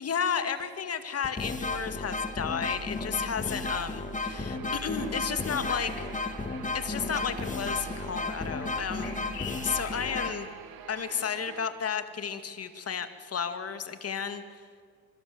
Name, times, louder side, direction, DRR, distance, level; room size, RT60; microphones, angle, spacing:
voice 1, 0.0-6.1 6.7-9.2 9.6-10.5 10.9-14.4, left 7 dB, 35° left, 9 dB, 2.1 m, -33 dB
sound 1, 0.6-0.7 1.2-10.3, left 3 dB, 20° left, 1.9 m, -33 dB
Guitar, 4.3-11.6, right 9 dB, 70° right, 2.0 m, -46 dB
sound 2, 5.4-11.5, left 7 dB, 80° left, 6.3 m, -48 dB
26.0 x 24.0 x 7.9 m, 2.1 s
supercardioid pair, 90°, 40 cm